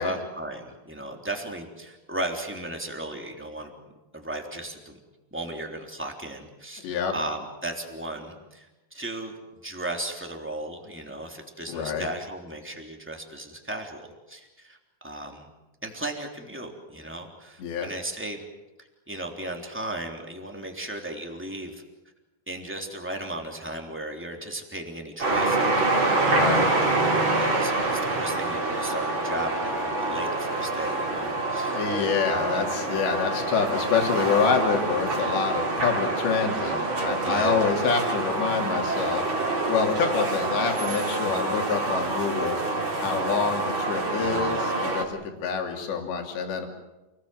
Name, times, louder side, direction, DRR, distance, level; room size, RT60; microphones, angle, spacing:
voice 1, 0.0-3.7 4.1-5.0 5.3-14.8 15.0-15.5 15.8-18.5 18.8-21.8 22.5-26.6 27.3-32.0 32.3-32.8 36.7-36.9 37.2-37.7 41.2-41.6 44.2-44.7, right 1 dB, 5° right, 2 dB, 2.5 m, -36 dB
voice 2, 11.7-12.1 17.6-17.9 26.3-26.7 31.7-39.2 39.7-42.6 43.0-46.7, left 5 dB, 70° left, 3 dB, 5.1 m, -27 dB
sound 1, 25.2-45.0, right 2 dB, 30° right, 3.7 m, -26 dB
29.0 x 20.5 x 7.9 m, 1.1 s
omnidirectional pair, 5.3 m